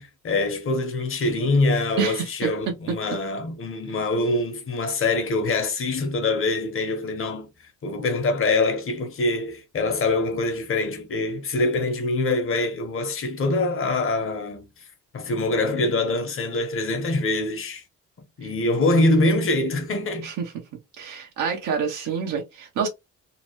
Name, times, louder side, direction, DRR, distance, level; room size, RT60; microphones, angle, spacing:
voice 1, 0.0-7.5 7.8-14.7 15.1-17.8 18.4-20.3, left 2 dB, 45° left, 0.9 m, -24 dB
voice 2, 2.0-2.5 20.2-20.3 21.0-22.9, right 6 dB, 90° right, 0.8 m, -27 dB
3.0 x 2.1 x 2.9 m
cardioid pair, 90°, 30 cm